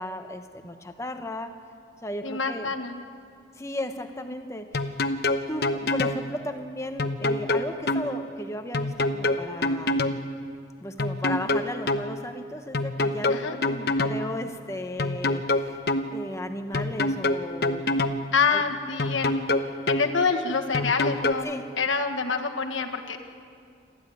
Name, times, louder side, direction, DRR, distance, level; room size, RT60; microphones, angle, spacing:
voice 1, 0.0-1.6 2.0-2.7 3.5-5.0 5.5-10.1 10.8-15.8 16.1-18.2 18.5-18.6 21.4-21.7, left 1 dB, 15° left, 6 dB, 1.1 m, -35 dB
voice 2, 2.2-3.0 13.3-13.5 18.3-19.4 19.9-23.3, left 5 dB, 90° left, 2 dB, 1.6 m, -26 dB
sound 1, 4.7-6.2 7.0-8.1 8.7-10.2 11.0-12.1 12.7-14.2 15.0-16.1 16.7-18.2 19.0-20.1 20.7-21.3, left 2 dB, 55° left, 1.0 m, -25 dB
28.0 x 13.5 x 9.4 m, 2.2 s
head